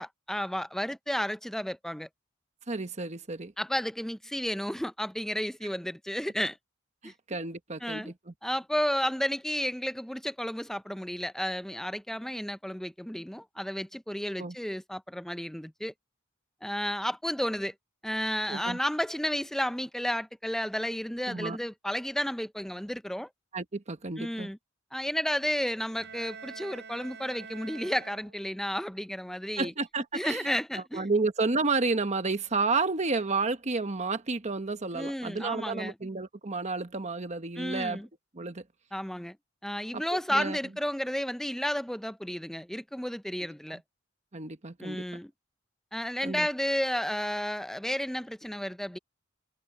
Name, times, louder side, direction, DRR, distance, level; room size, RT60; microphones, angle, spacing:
voice 1, 0.0-2.1 3.6-6.6 7.0-7.1 7.8-8.1 8.4-15.9 16.6-17.7 18.0-23.3 24.2-24.6 24.9-29.7 30.1-31.1 34.9-35.9 37.6-38.1 38.9-39.4 39.6-43.8 44.8-45.3 45.9-49.0, equal, ahead, 0.5 m, -32 dB
voice 2, 2.7-3.5 7.0-8.3 14.4-14.5 18.5-18.8 21.3-21.6 23.5-24.5 29.6-30.5 30.9-38.0 38.3-38.6 39.9-40.6 43.7-43.8 44.3-45.0 46.2-46.5, right 3 dB, 35° right, 1.3 m, -31 dB
Bowed string instrument, 26.0-28.7, right 5 dB, 60° right, 6.9 m, -46 dB
head